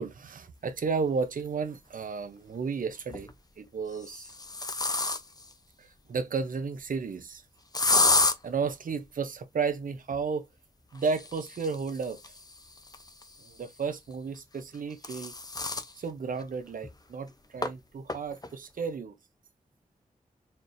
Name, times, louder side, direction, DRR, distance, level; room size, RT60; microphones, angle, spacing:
voice 1, 0.0-3.3 3.6-4.3 5.8-7.4 8.4-10.5 10.9-12.3 13.4-15.4 15.9-19.1, right 5 dB, 75° right, 0.7 m, -33 dB
sound 1, 1.4-1.5 2.9-3.3 3.9-5.5 7.7-8.4 10.9-13.6 14.6-15.9 16.4-16.5 16.8-16.9 17.6-17.7 18.1-18.5, left 3 dB, 25° left, 0.6 m, -29 dB
4.4 x 3.2 x 2.6 m
cardioid pair, 55°, 14 cm